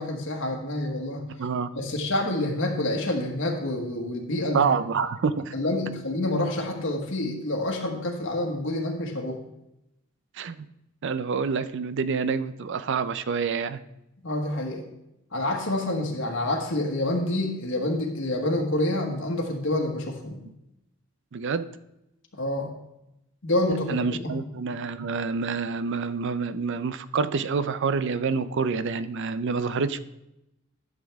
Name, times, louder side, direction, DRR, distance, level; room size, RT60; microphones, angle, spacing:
voice 1, 0.0-1.2 1.7-4.7 5.5-9.4 14.2-14.8 15.3-20.4 22.3-22.7 23.4-24.3, left 1 dB, 65° left, 1 dB, 1.4 m, -27 dB
voice 2, 1.4-1.7 4.5-5.5 10.3-10.7 11.0-13.8 21.3-21.7 23.9-30.0, right 5 dB, 60° right, 14 dB, 0.5 m, -27 dB
12.0 x 7.3 x 3.5 m, 0.87 s
head